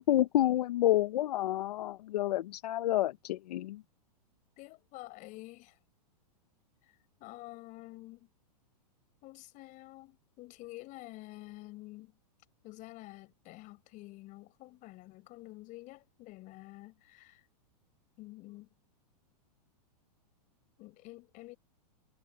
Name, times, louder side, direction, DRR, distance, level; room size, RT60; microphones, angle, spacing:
voice 1, 0.0-3.8, left 13 dB, 70° left, 1.2 m, -29 dB
voice 2, 4.6-5.8 6.8-8.3 9.2-12.2 12.6-17.5 18.2-18.7 20.8-21.6, left 20 dB, 40° left, 7.5 m, -49 dB
hypercardioid pair, 135°, 21 cm